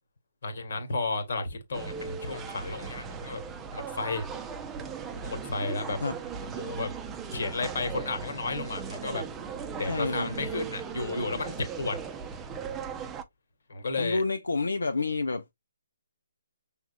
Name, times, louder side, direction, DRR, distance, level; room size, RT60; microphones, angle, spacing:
voice 1, 0.4-3.4 3.7-4.2 5.2-6.0 6.6-6.9 7.3-9.2 9.7-12.0 13.7-14.2, left 3 dB, 60° left, 1.6 m, -32 dB
sound 1, 1.7-13.2, right 6 dB, 15° right, 0.6 m, -38 dB
voice 2, 9.9-10.4 14.0-15.5, left 3 dB, 85° left, 0.6 m, -29 dB
5.8 x 3.6 x 2.4 m
figure-of-eight pair, 145°, 0 cm